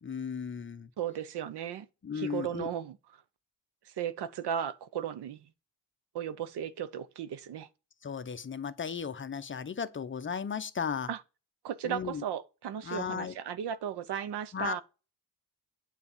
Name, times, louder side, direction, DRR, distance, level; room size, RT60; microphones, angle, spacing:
voice 1, 0.0-0.9 2.0-2.7 8.0-11.1 11.8-12.2 12.8-13.3 14.5-14.8, left 6 dB, 30° left, 0.7 m, -35 dB
voice 2, 1.0-1.9 2.1-3.0 4.0-5.4 6.1-7.7 11.1-11.2 11.6-14.8, right 9 dB, 80° right, 0.9 m, -35 dB
9.4 x 4.2 x 7.2 m
wide cardioid pair, 160°, 40 cm